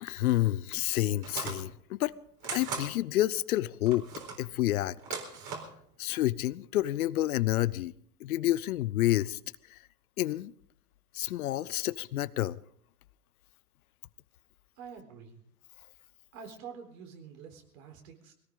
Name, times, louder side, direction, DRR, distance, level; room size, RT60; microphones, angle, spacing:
voice 1, 0.0-2.1 2.5-4.1 4.4-4.9 6.0-7.9 8.2-9.4 9.7-9.8 10.2-10.5 11.1-12.6, left 15 dB, 65° left, 0.7 m, -29 dB
sound 1, 1.2-1.6 2.4-2.9 3.9-4.4 5.0-5.7, right 5 dB, 40° right, 4.1 m, -38 dB
voice 2, 14.8-15.4 16.3-18.3, right 6 dB, 55° right, 4.0 m, -47 dB
21.0 x 18.0 x 3.8 m
hypercardioid pair, 105°, 47 cm